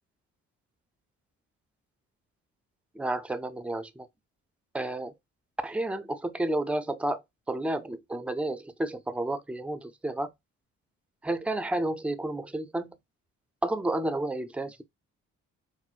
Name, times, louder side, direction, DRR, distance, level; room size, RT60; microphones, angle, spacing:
voice 1, 2.9-4.1 4.7-5.1 5.6-10.3 11.2-13.0 13.6-14.8, right 1 dB, 5° right, 0.4 m, -31 dB
4.4 x 2.0 x 2.4 m
cardioid pair, 90°, 30 cm